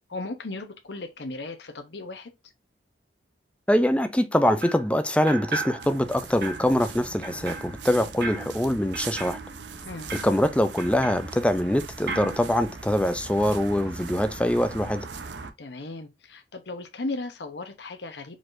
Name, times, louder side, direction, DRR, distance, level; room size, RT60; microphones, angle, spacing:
voice 1, 0.1-2.3 9.8-10.1 15.6-18.4, left 2 dB, 70° left, 0.9 m, -36 dB
voice 2, 3.7-9.4 10.2-15.1, left 1 dB, 5° left, 0.5 m, -24 dB
sound 1, 4.6-4.9 5.3-6.1 6.4-11.8 12.1-12.4, right 3 dB, 60° right, 1.2 m, -37 dB
sound 2, 5.8-15.5, right 4 dB, 80° right, 0.8 m, -40 dB
4.8 x 4.1 x 2.6 m
head